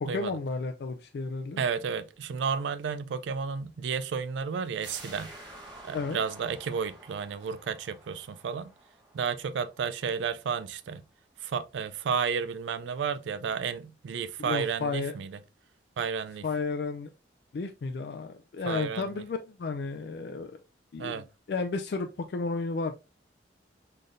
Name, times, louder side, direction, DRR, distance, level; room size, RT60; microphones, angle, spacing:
voice 1, 0.0-1.7 5.9-6.2 14.4-15.1 16.4-17.1 17.5-20.6 20.9-22.9, left 4 dB, 60° left, 0.4 m, -33 dB
voice 2, 1.6-5.3 5.8-8.7 9.1-11.0 11.4-15.3 16.0-16.4 18.7-19.2 21.0-21.2, right 6 dB, 85° right, 0.4 m, -32 dB
sound 1, 4.8-10.3 10.7-10.8, right 1 dB, 25° right, 1.1 m, -50 dB
3.8 x 3.3 x 2.5 m
head